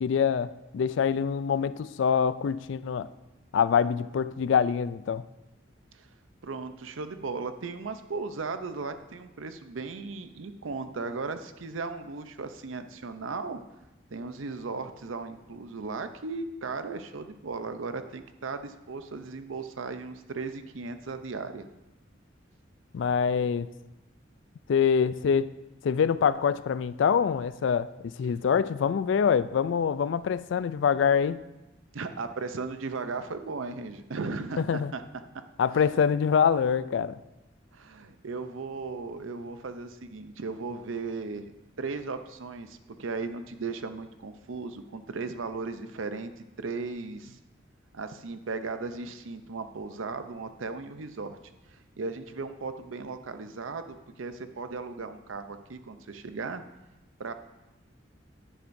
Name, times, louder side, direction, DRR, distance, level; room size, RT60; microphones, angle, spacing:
voice 1, 0.0-3.1 3.5-5.2 22.9-23.7 24.7-25.5 25.8-31.4 34.7-34.9 35.6-37.2, left 7 dB, 75° left, 16 dB, 0.3 m, -25 dB
voice 2, 6.4-13.6 14.1-21.7 31.9-35.0 37.7-41.5 41.8-47.4 47.9-51.4 51.7-56.6 57.2-57.3, right 4 dB, 90° right, 9 dB, 0.6 m, -36 dB
10.0 x 10.0 x 2.7 m, 0.99 s
head